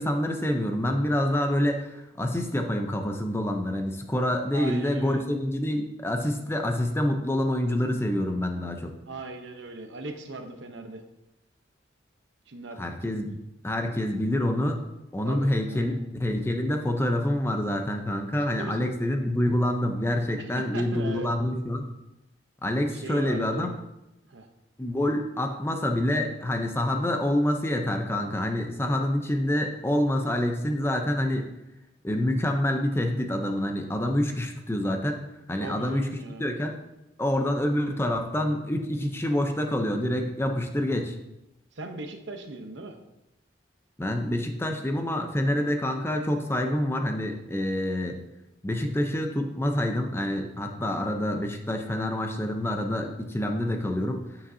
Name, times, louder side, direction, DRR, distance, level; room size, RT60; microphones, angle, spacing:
voice 1, 0.0-8.9 12.8-13.4 13.6-14.8 15.1-21.8 22.6-23.7 24.8-31.5 32.0-35.2 35.5-36.1 36.4-36.7 37.2-41.2 44.0-48.2 48.6-54.2, left 1 dB, 15° left, 4 dB, 0.6 m, -27 dB
voice 2, 4.5-5.2 9.1-11.0 12.5-12.8 13.2-13.4 15.2-16.0 18.6-18.9 20.4-21.3 22.9-23.7 24.3-24.5 35.6-36.5 41.7-43.0, right 2 dB, 75° right, 5 dB, 0.9 m, -39 dB
8.8 x 7.0 x 2.7 m, 0.93 s
head